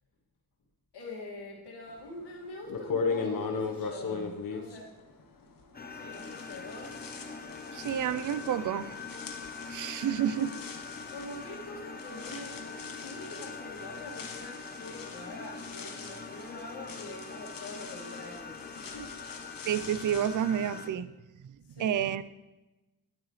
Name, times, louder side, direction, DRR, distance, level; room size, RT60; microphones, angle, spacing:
voice 1, 0.9-5.1 5.9-7.0 11.1-19.1 21.6-22.0, left 2 dB, 85° left, -2 dB, 2.3 m, -44 dB
sound 1, 2.1-2.2 2.7-5.8 6.1-20.9, left 4 dB, 60° left, 1.2 m, -39 dB
sound 2, 5.7-20.9, left 4 dB, 25° left, 0.8 m, -43 dB
voice 2, 7.7-9.0 9.7-10.5 19.7-21.1 21.4-22.2, right 9 dB, 50° right, 16 dB, 0.5 m, -30 dB
11.0 x 8.9 x 3.2 m, 1.0 s
cardioid pair, 75°, 39 cm